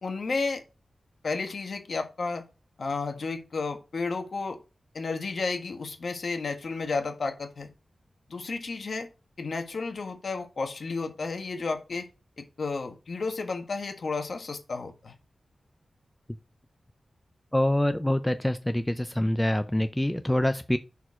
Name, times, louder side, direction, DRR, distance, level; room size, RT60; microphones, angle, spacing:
voice 1, 0.0-0.6 1.2-2.4 2.8-4.6 4.9-7.7 8.3-9.1 9.4-12.1 12.4-15.1, left 4 dB, 60° left, 1.4 m, -32 dB
voice 2, 17.5-20.8, left 1 dB, 10° left, 0.5 m, -25 dB
6.5 x 4.5 x 4.3 m
wide cardioid pair, 110°, 0 cm